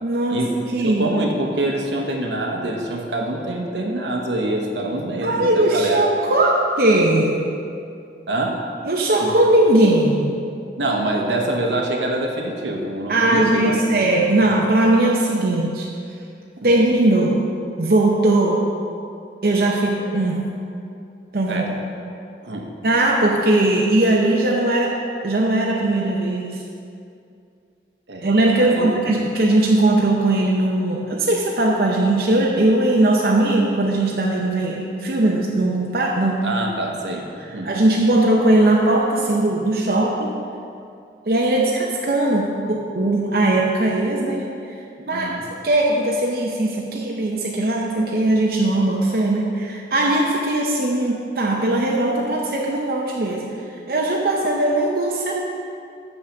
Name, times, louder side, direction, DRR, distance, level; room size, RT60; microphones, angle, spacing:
voice 1, 0.0-0.4 0.7-1.1 5.2-7.4 8.8-10.3 13.1-15.9 16.6-17.4 17.8-18.6 19.4-20.5 21.3-21.8 22.8-24.9 25.2-26.6 28.2-36.5 37.6-40.3 41.3-44.5 45.0-45.3 45.6-53.5 53.9-55.4, right 1 dB, 55° right, -2 dB, 0.6 m, -19 dB
voice 2, 0.8-6.0 8.3-8.6 9.2-9.3 10.8-13.8 14.4-14.5 16.6-16.7 21.5-21.7 22.4-22.7 28.1-28.3 28.6-29.0 36.4-37.7 45.1-45.4, right 1 dB, 85° right, 1 dB, 1.1 m, -25 dB
6.5 x 5.8 x 6.5 m, 2.5 s
head